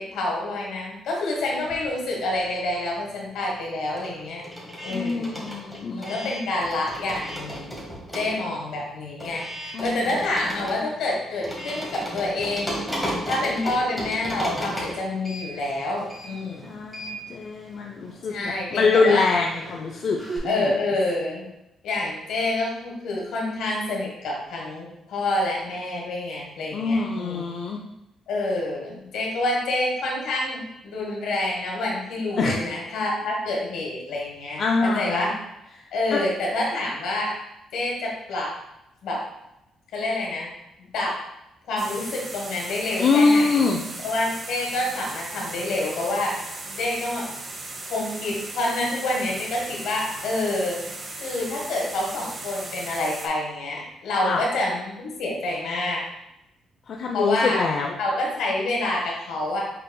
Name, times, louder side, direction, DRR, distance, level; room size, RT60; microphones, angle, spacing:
voice 1, 0.0-4.4 4.8-5.4 6.0-7.8 8.1-16.7 18.3-19.3 20.4-21.5 21.8-27.5 28.3-35.3 35.9-37.3 37.7-38.5 39.0-39.2 39.9-40.5 40.8-41.2 41.7-43.7 44.0-47.3 47.9-56.0 57.1-57.6 58.0-59.6, left 2 dB, 80° left, -2 dB, 1.3 m, -27 dB
sound 1, 1.6-2.8 3.1-20.4, equal, 5° right, 1.5 m, -35 dB
voice 2, 4.9-6.3 9.7-10.0 16.6-20.2 20.4-20.7 26.7-27.8 32.4-32.6 34.6-35.3 35.8-35.9 36.1-36.2 43.0-43.8 54.2-54.4 56.9-57.9, left 4 dB, 55° left, 1 dB, 0.4 m, -24 dB
sound 2, 41.8-53.3, right 2 dB, 40° right, 0.8 m, -37 dB
5.1 x 4.0 x 2.2 m, 0.89 s
cardioid pair, 90°, 0 cm